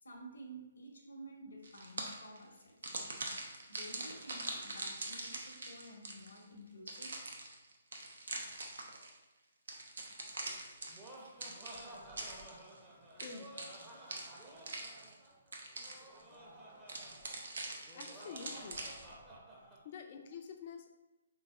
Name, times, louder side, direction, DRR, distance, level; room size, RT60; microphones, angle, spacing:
voice 1, 0.0-2.8 3.7-7.1, right 1 dB, 70° left, 0 dB, 0.8 m, -52 dB
sound 1, 1.6-2.4 2.8-6.4 6.9-9.2 9.7-12.8 13.2-15.3 15.5-16.2 16.9-19.1, right 2 dB, 60° right, 0.7 m, -44 dB
Laughter, 10.7-19.8, right 1 dB, 10° right, 0.7 m, -53 dB
voice 2, 13.2-13.5 17.9-18.8 19.8-20.9, left 6 dB, 40° left, 5 dB, 0.5 m, -47 dB
3.9 x 3.8 x 2.4 m, 1.1 s
figure-of-eight pair, 135°, 0 cm